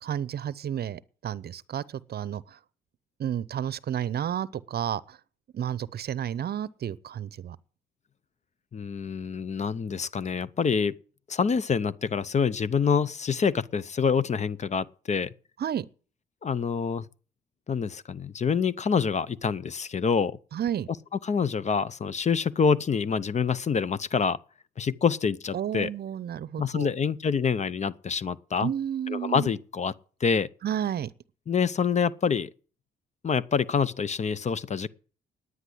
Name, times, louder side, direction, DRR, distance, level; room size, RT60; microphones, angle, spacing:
voice 1, 0.0-1.8 2.1-2.4 3.2-5.2 5.5-7.6 15.6-15.9 20.5-20.9 25.5-26.9 28.6-29.5 30.6-31.1, right 9 dB, 55° right, 0.7 m, -31 dB
voice 2, 8.7-10.9 11.3-15.3 16.4-17.0 17.7-20.4 21.2-24.4 24.8-25.9 26.6-28.7 29.1-29.9 30.2-30.5 31.5-32.5 33.2-34.9, left 6 dB, 35° left, 0.6 m, -26 dB
9.9 x 9.7 x 7.8 m
cardioid pair, 90°, 20 cm